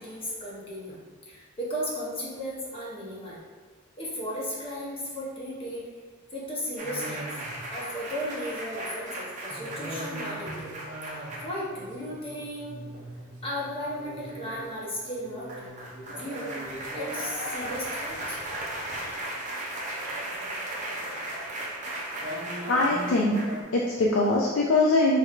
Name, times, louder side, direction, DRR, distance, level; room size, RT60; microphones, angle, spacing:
voice 1, 0.0-3.4 4.0-5.8 6.3-7.3 7.7-10.7 11.1-12.8 13.4-15.7 16.1-18.4, equal, 30° left, -6 dB, 0.7 m, -35 dB
sound 1, 6.8-23.6, right 1 dB, 40° right, 0.5 m, -36 dB
voice 2, 22.7-23.5 23.7-25.2, left 2 dB, 65° left, -3 dB, 0.3 m, -22 dB
3.2 x 3.0 x 2.4 m, 1.4 s
head